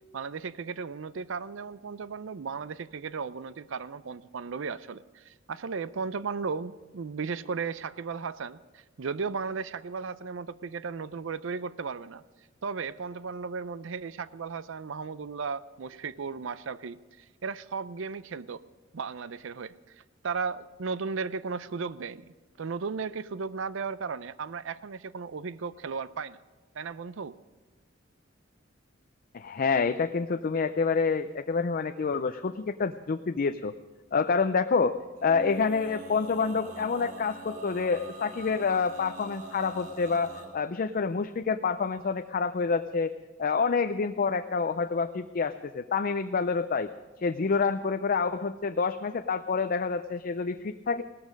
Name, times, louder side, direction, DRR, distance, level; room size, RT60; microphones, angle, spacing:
voice 1, 0.1-12.2 12.6-18.6 18.9-20.0 20.2-22.3 22.6-26.4 26.7-27.4, right 5 dB, 70° right, 16 dB, 0.5 m, -35 dB
voice 2, 29.3-33.7 34.1-35.0 35.2-43.1 43.4-46.9 47.2-51.0, left 5 dB, 45° left, 8 dB, 0.5 m, -27 dB
Male singing, 35.1-40.5, right 2 dB, 45° right, 2.9 m, -43 dB
17.5 x 13.5 x 5.2 m, 1.2 s
head